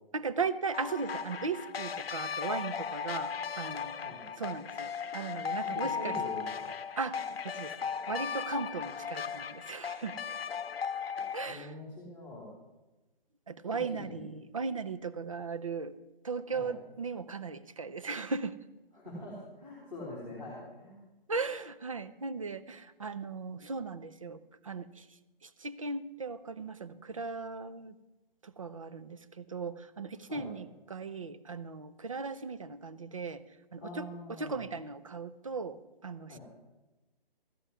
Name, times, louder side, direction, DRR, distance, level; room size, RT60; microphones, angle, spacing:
voice 1, 0.1-4.1 4.4-6.2 7.0-10.2 11.3-11.7 13.5-16.0 16.2-18.6 21.3-25.1 25.4-28.0 28.4-33.4 33.7-36.4, right 4 dB, 35° right, 13 dB, 0.5 m, -37 dB
sound 1, 0.7-11.5, left 6 dB, 80° left, 0.7 m, -37 dB
voice 2, 5.6-6.7 11.5-12.5 13.9-14.2 16.5-16.7 18.9-21.0 30.3-30.5 33.8-34.7 36.3-36.4, left 1 dB, 5° right, -9 dB, 2.2 m, -44 dB
13.5 x 5.5 x 9.4 m, 1.1 s
hypercardioid pair, 170°, 29 cm